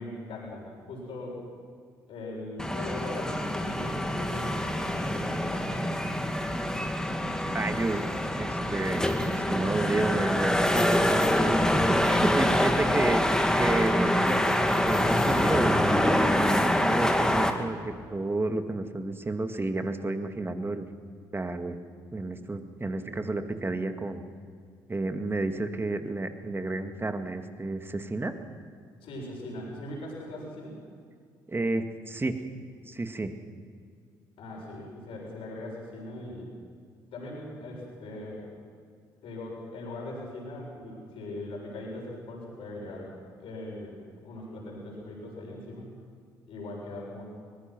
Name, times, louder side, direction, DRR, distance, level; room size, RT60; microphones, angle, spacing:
voice 1, 0.0-1.5 2.1-5.8 29.0-30.8 34.4-36.5 37.1-38.5 39.2-43.1 43.4-46.0 46.5-47.2, left 1 dB, 65° left, -2 dB, 7.0 m, -40 dB
sound 1, 2.6-17.5, left 1 dB, 5° left, 2.4 m, -25 dB
voice 2, 7.5-8.1 8.4-14.5 14.8-16.2 16.6-20.9 21.3-21.8 22.1-24.2 24.9-28.3 31.5-32.4 32.9-33.3, right 2 dB, 20° right, 7 dB, 2.2 m, -31 dB
24.0 x 20.5 x 6.2 m, 2.1 s
hypercardioid pair, 50°, 10 cm